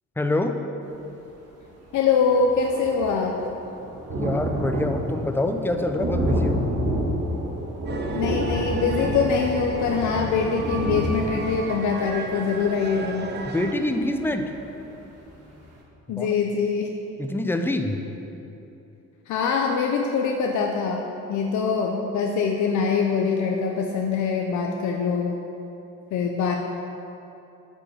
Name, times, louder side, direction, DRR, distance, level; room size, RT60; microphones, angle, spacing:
voice 1, 0.2-0.5 4.1-6.6 13.5-14.5 16.1-16.3 17.2-18.0, left 1 dB, 5° left, 6 dB, 0.5 m, -25 dB
Thunder, 1.6-1.7 1.9-14.6 15.0-15.1 15.5-15.6, right 1 dB, 55° right, 1.5 m, -29 dB
voice 2, 1.9-3.3 8.1-13.3 16.1-16.9 19.3-25.4 26.1-26.6, left 5 dB, 70° left, 1 dB, 0.6 m, -24 dB
sound 1, 7.9-13.7, right 4 dB, 35° right, 0.7 m, -36 dB
8.4 x 5.3 x 4.8 m, 2.9 s
cardioid pair, 90°, 30 cm